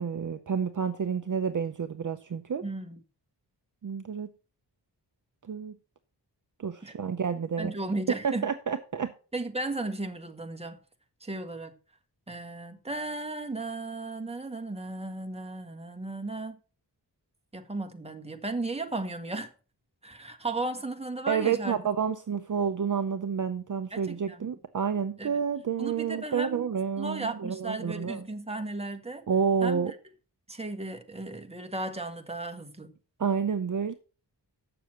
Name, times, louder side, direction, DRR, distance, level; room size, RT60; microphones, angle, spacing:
voice 1, 0.0-2.6 3.8-4.3 5.5-5.7 6.6-7.7 8.2-9.1 21.3-28.3 29.3-29.9 33.2-33.9, right 6 dB, 45° right, 0.7 m, -29 dB
voice 2, 2.6-3.0 6.8-6.9 7.6-8.5 9.3-10.8 11.2-11.7 12.3-16.6 17.5-19.5 20.0-21.8 23.9-24.5 25.2-25.3 25.8-26.6 27.0-29.2 29.6-29.9 30.5-32.9, right 2 dB, 15° right, 1.3 m, -35 dB
7.8 x 6.9 x 5.8 m
wide cardioid pair, 110°, 43 cm